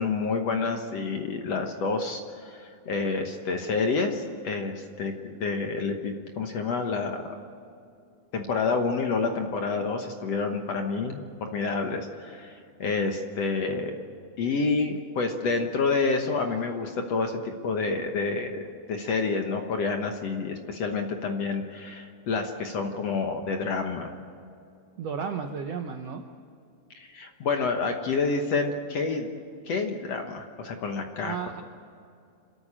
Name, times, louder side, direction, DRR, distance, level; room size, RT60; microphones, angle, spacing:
voice 1, 0.0-7.3 8.3-14.0 14.4-18.6 18.9-24.1 27.0-29.3 29.7-31.4, left 4 dB, 60° left, 4 dB, 1.9 m, -28 dB
voice 2, 25.0-26.3 31.2-31.6, right 6 dB, 75° right, 6 dB, 1.5 m, -33 dB
29.0 x 13.5 x 8.8 m, 2.5 s
omnidirectional pair, 4.1 m